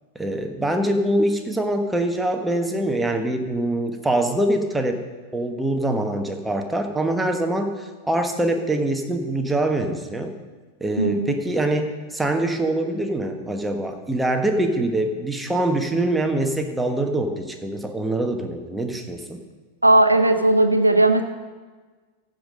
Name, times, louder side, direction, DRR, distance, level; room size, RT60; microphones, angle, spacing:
voice 1, 0.1-5.0 5.3-10.4 10.8-19.4, right 1 dB, 5° right, 5 dB, 1.2 m, -24 dB
voice 2, 11.0-11.3 19.8-21.2, right 2 dB, 85° right, 7 dB, 0.8 m, -17 dB
15.5 x 5.4 x 6.5 m, 1.4 s
figure-of-eight pair, 90°, 0 cm